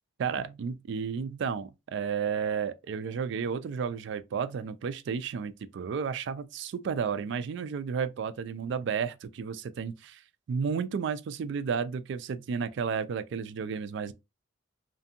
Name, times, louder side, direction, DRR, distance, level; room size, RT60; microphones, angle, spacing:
voice 1, 0.2-10.2 10.5-14.1, right 6 dB, 60° right, 0.3 m, -32 dB
2.6 x 2.5 x 2.5 m
head